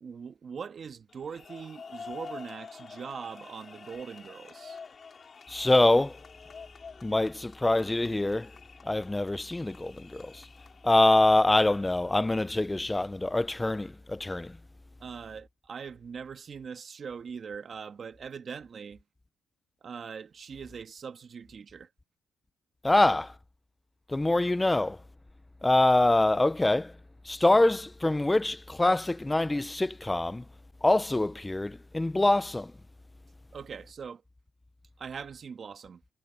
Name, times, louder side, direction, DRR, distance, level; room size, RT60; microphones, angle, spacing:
voice 1, 0.0-4.8 15.0-19.0 19.8-21.9 33.5-34.2 35.0-36.0, right 6 dB, 45° right, 1.4 m, -41 dB
sound 1, 1.1-12.2, left 5 dB, 40° left, 3.7 m, -48 dB
voice 2, 5.5-6.2 7.0-8.5 8.9-10.5 10.8-14.5 22.8-23.3 24.1-25.0 25.6-26.9 27.3-30.4 30.8-32.7, left 2 dB, 15° left, 0.3 m, -25 dB
cardioid pair, 90°, 0 cm